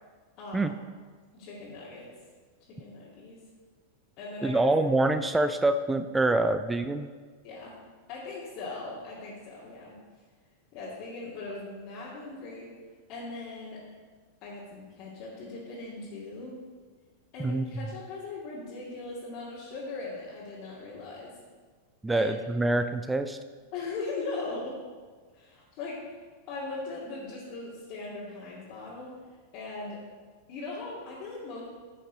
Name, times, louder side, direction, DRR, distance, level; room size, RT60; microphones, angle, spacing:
voice 1, 0.4-0.7 1.3-2.1 2.7-3.4 4.2-4.7 7.4-7.8 8.1-10.0 10.7-12.7 13.1-13.8 14.4-16.6 17.3-21.4 22.1-22.3 23.7-24.8 25.3-26.0 26.5-29.1 29.5-30.0 30.5-31.6, left 3 dB, 40° left, -8 dB, 2.4 m, -39 dB
voice 2, 4.4-7.1 17.4-17.9 22.0-23.4, right 2 dB, 10° right, 10 dB, 0.4 m, -26 dB
11.0 x 8.2 x 4.0 m, 1.5 s
figure-of-eight pair, 90°, 0 cm